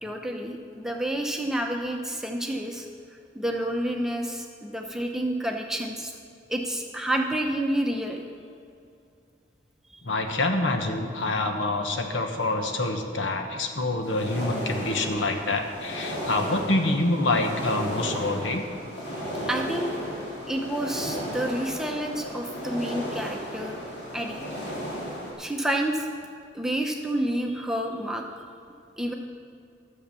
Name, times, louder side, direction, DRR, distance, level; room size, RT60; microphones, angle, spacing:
voice 1, 0.0-2.9 3.3-6.1 6.5-8.2 19.4-19.9 20.5-23.8 24.1-24.4 25.4-26.1 26.5-28.2 29.0-29.1, right 1 dB, 5° right, 2 dB, 0.7 m, -29 dB
voice 2, 10.0-18.6, left 2 dB, 80° left, 5 dB, 1.1 m, -26 dB
sound 1, 14.0-25.3, equal, 65° left, 2.8 m, -34 dB
11.5 x 7.0 x 6.9 m, 2.4 s
head